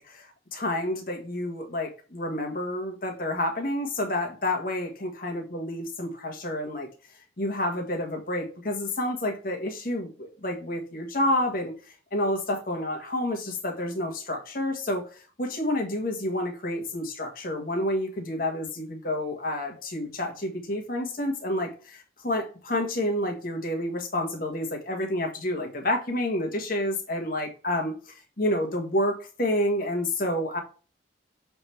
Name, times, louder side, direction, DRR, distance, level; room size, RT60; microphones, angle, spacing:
voice 1, 0.0-6.9 7.4-11.7 12.1-30.6, left 1 dB, 50° left, 1.5 m, -29 dB
6.9 x 3.5 x 4.3 m
head